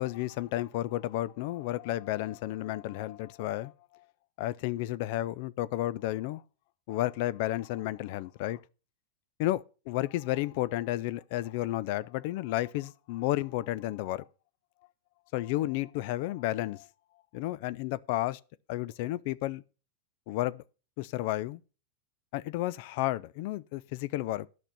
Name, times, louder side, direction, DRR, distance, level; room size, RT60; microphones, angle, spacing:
voice 1, 0.0-4.0 4.4-6.4 6.9-8.6 9.4-14.2 15.3-16.9 17.3-18.4 18.7-19.6 20.3-20.6 21.0-21.6 22.3-24.5, left 16 dB, 60° left, 0.4 m, -32 dB
9.0 x 6.0 x 6.8 m
hypercardioid pair, 120°, 0 cm